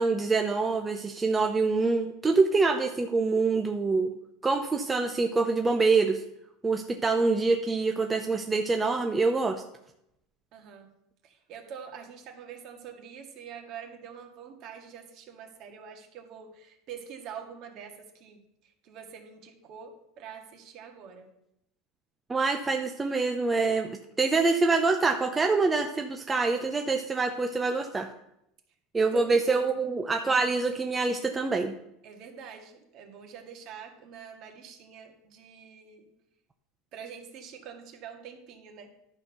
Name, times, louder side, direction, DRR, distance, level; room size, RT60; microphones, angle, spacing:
voice 1, 0.0-4.1 4.4-6.2 6.6-9.6 22.3-28.1 28.9-31.7, right 3 dB, 15° right, 4 dB, 0.7 m, -25 dB
voice 2, 10.5-10.9 11.2-18.4 18.8-21.3 29.0-29.8 32.0-36.1 36.9-38.9, right 7 dB, 50° right, 3 dB, 1.9 m, -45 dB
11.5 x 4.4 x 6.7 m, 0.80 s
supercardioid pair, 130°, 0 cm